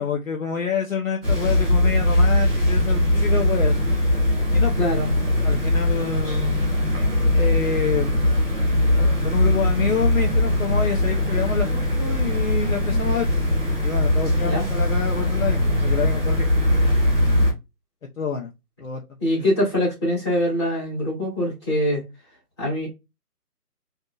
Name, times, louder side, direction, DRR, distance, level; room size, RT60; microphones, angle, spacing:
voice 1, 0.0-3.8 4.5-4.8 5.4-6.6 7.4-8.3 9.0-13.5 13.8-16.5 16.7-17.0 18.2-18.5 18.8-19.5, left 6 dB, 60° left, 0.7 m, -28 dB
sound 1, 1.2-17.5, left 1 dB, 40° right, 2.0 m, -20 dB
voice 2, 4.8-5.1 14.4-14.6 19.2-22.0 22.6-22.9, equal, 20° left, 1.7 m, -23 dB
3.8 x 2.7 x 2.3 m
hypercardioid pair, 180°, 46 cm